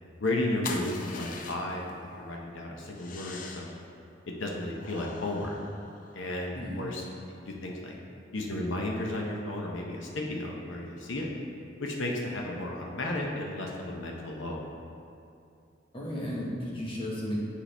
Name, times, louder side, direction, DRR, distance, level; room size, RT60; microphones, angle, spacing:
voice 1, 0.2-3.7 4.3-5.6 6.1-7.0 7.4-7.9 8.3-11.3 11.8-14.7, left 1 dB, 75° left, -1 dB, 0.7 m, -33 dB
sound 1, 0.6-1.9 2.9-3.8 4.8-6.4, left 4 dB, 40° left, 0.4 m, -42 dB
voice 2, 15.9-17.4, equal, 25° left, -5 dB, 1.2 m, -34 dB
8.2 x 4.9 x 3.3 m, 2.5 s
head